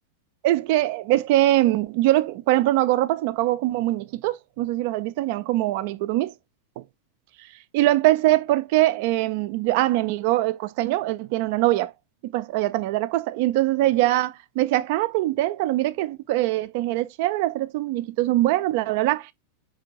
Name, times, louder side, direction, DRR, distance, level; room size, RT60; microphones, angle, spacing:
voice 1, 0.4-6.3 6.8-6.9 7.7-11.9 12.2-19.3, right 16 dB, 50° right, 0.4 m, -22 dB
4.2 x 2.7 x 2.8 m
figure-of-eight pair, 90°, 0 cm